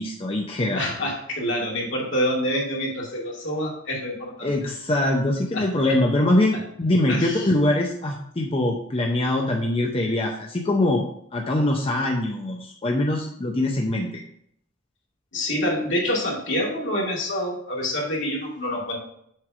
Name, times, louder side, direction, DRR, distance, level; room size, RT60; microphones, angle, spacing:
voice 1, 0.0-0.8 4.4-11.0 11.3-14.1, left 1 dB, 30° left, 1 dB, 0.6 m, -23 dB
voice 2, 0.7-4.7 5.5-5.7 7.1-7.5 15.3-19.0, equal, 70° left, -3 dB, 2.3 m, -27 dB
7.4 x 3.3 x 5.8 m, 0.70 s
head